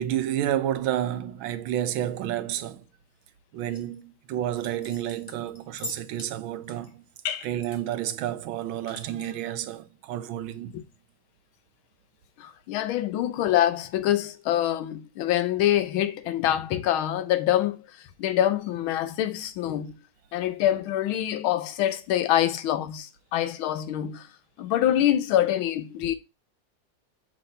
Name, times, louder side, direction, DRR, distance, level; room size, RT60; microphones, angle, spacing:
voice 1, 0.0-2.8 3.5-7.0 7.4-10.8, right 11 dB, 80° right, 1.4 m, -30 dB
sound 1, 3.7-4.0 4.5-6.3 6.6-7.8 8.1-8.2 8.5-9.3, left 2 dB, 60° left, 0.4 m, -43 dB
voice 2, 12.4-17.8 18.2-19.9 20.3-24.3 24.6-26.1, left 12 dB, 80° left, 1.5 m, -25 dB
5.5 x 3.2 x 5.3 m
omnidirectional pair, 2.2 m